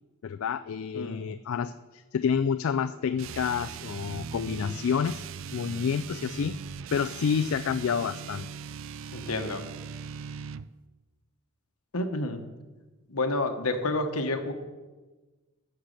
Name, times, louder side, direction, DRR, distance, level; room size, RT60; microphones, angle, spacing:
voice 1, 0.2-6.6 6.9-8.5, left 7 dB, 65° left, 10 dB, 0.3 m, -29 dB
sound 1, 3.2-10.7, right 6 dB, 60° right, 0.3 m, -40 dB
voice 2, 9.1-9.6 11.9-12.4 13.1-14.5, left 2 dB, 80° left, 7 dB, 1.2 m, -29 dB
11.5 x 6.6 x 6.6 m, 1.2 s
head